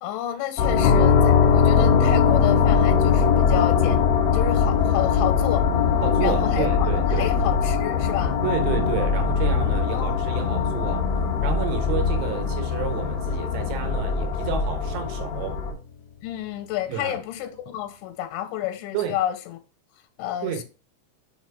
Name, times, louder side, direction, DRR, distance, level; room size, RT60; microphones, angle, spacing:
voice 1, 0.0-4.1 4.3-5.7 6.2-8.4 9.9-10.4 16.2-19.6 20.2-20.6, left 12 dB, 90° left, 3.1 m, -30 dB
sound 1, 0.6-15.7, left 5 dB, 50° left, 2.5 m, -23 dB
sound 2, 0.8-14.5, left 7 dB, 75° left, 2.8 m, -24 dB
voice 2, 6.0-7.3 8.4-11.1 11.4-15.6 16.9-17.2 18.9-19.1 20.4-20.6, right 8 dB, 80° right, 3.3 m, -30 dB
6.7 x 3.0 x 4.7 m
omnidirectional pair, 5.4 m